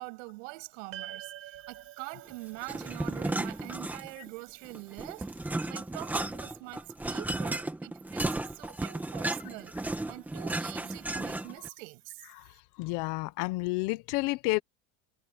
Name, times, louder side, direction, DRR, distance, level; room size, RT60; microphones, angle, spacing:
voice 1, 0.0-9.8 10.1-12.3, right 26 dB, 70° right, 7.0 m, -44 dB
sound 1, 0.9-5.4, right 13 dB, 35° right, 6.4 m, -48 dB
sound 2, 2.6-4.3 4.7-11.7, right 2 dB, 5° right, 1.3 m, -34 dB
voice 2, 12.8-14.6, left 22 dB, 50° left, 0.9 m, -30 dB
cardioid pair, 180°, 40 cm